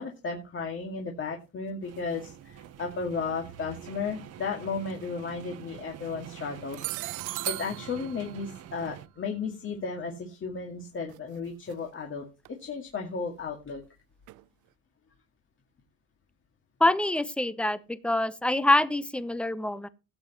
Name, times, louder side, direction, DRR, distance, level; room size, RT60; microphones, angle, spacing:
voice 1, 0.0-6.8 7.4-13.8, left 4 dB, 40° left, 2.1 m, -34 dB
sound 1, 1.8-9.1, right 10 dB, 50° right, 1.0 m, -46 dB
sound 2, 2.6-2.7 4.8-5.0 5.8-6.2 6.7-9.7 11.1-11.4 11.7-11.8 12.4-12.5 14.3-14.4, right 21 dB, 70° right, 0.5 m, -38 dB
voice 2, 16.8-19.9, left 1 dB, 5° left, 0.7 m, -25 dB
17.0 x 8.0 x 3.0 m
cardioid pair, 105°, 32 cm